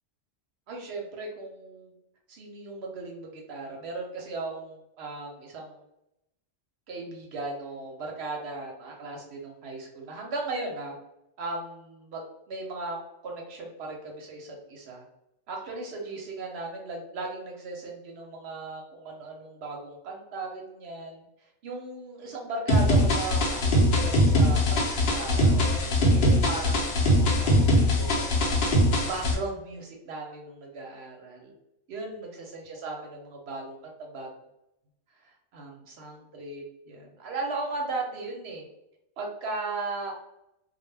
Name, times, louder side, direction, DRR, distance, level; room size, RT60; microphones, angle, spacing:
voice 1, 0.7-1.9 2.3-5.8 6.9-11.0 11.4-15.0 15.5-24.8 25.1-28.3 28.6-31.5 31.9-34.3 35.2-38.7 39.2-40.1, right 3 dB, 65° right, 0 dB, 0.8 m, -37 dB
sound 1, 22.7-29.3, left 1 dB, 60° left, 0.8 m, -22 dB
2.2 x 2.1 x 3.1 m, 0.84 s
omnidirectional pair, 1.2 m